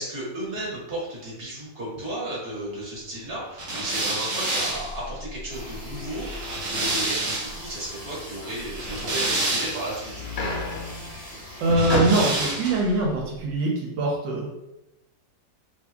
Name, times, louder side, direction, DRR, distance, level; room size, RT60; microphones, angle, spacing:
voice 1, 0.0-10.1, right 1 dB, 35° right, -5 dB, 1.3 m, -34 dB
sound 1, 3.1-3.4 4.1-4.2 5.0-5.2 5.6-5.8 6.5-9.5 9.9-12.7, left 3 dB, 60° left, 1.1 m, -33 dB
sound 2, 3.6-7.7 8.6-10.0 11.7-12.9, right 2 dB, 55° right, 1.2 m, -29 dB
sound 3, 5.5-11.8, left 1 dB, 10° left, 1.3 m, -41 dB
voice 2, 11.6-14.5, right 2 dB, 85° right, -2 dB, 1.4 m, -23 dB
2.9 x 2.6 x 3.4 m, 0.89 s
omnidirectional pair, 2.0 m